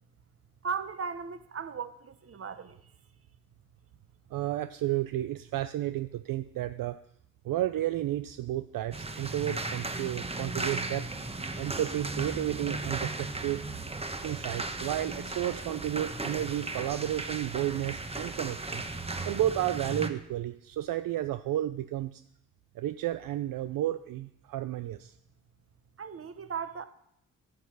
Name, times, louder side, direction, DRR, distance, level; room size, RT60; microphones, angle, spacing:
voice 1, 0.6-2.9 26.0-26.9, right 6 dB, 35° right, 12 dB, 1.1 m, -37 dB
voice 2, 4.3-7.0 7.4-11.1 11.6-13.7 14.2-18.8 19.3-22.2 22.7-25.1, right 13 dB, 60° right, 11 dB, 0.6 m, -32 dB
sound 1, 8.9-20.1, right 2 dB, 15° right, 1.2 m, -36 dB
9.8 x 5.9 x 6.2 m, 0.77 s
hypercardioid pair, 50°, 38 cm